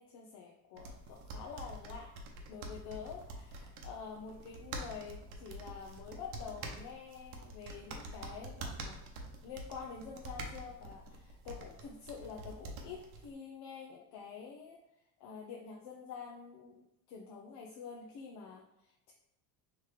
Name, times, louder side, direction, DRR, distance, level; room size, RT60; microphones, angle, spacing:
voice 1, 0.0-2.1 2.5-9.0 9.4-14.8 15.2-19.1, left 6 dB, 60° left, -1 dB, 0.7 m, -47 dB
sound 1, 0.8-13.3, right 2 dB, 90° right, 0.8 m, -46 dB
3.4 x 3.2 x 3.2 m, 0.83 s
supercardioid pair, 95°, 45 cm